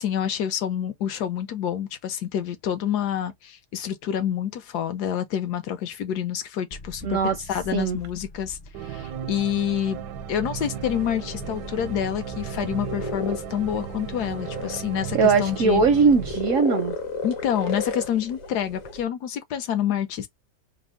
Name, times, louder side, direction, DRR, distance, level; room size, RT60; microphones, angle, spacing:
voice 1, 0.0-10.0 10.3-15.8 17.2-20.3, left 9 dB, 70° left, 1.1 m, -28 dB
sound 1, 6.7-16.5, left 1 dB, 40° left, 0.6 m, -43 dB
voice 2, 7.0-7.4 7.7-8.0 15.1-17.0, right 5 dB, 70° right, 0.8 m, -20 dB
sound 2, 8.7-17.2, right 11 dB, 85° right, 1.2 m, -36 dB
sound 3, 10.8-19.0, left 2 dB, 55° left, 1.3 m, -34 dB
3.5 x 2.1 x 3.5 m
omnidirectional pair, 1.8 m